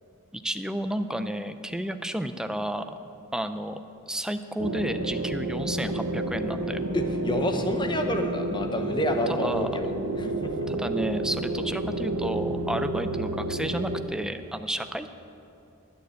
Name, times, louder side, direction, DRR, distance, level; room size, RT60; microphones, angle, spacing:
voice 1, 0.3-2.9 3.3-3.8 4.1-6.8 9.3-9.9 10.7-15.1, right 1 dB, 5° right, 9 dB, 0.4 m, -32 dB
sound 1, 4.6-14.0, right 2 dB, 90° right, 1.0 m, -30 dB
voice 2, 6.9-9.9 10.2-10.7, left 1 dB, 20° left, 5 dB, 0.9 m, -29 dB
11.5 x 6.8 x 9.4 m, 2.6 s
head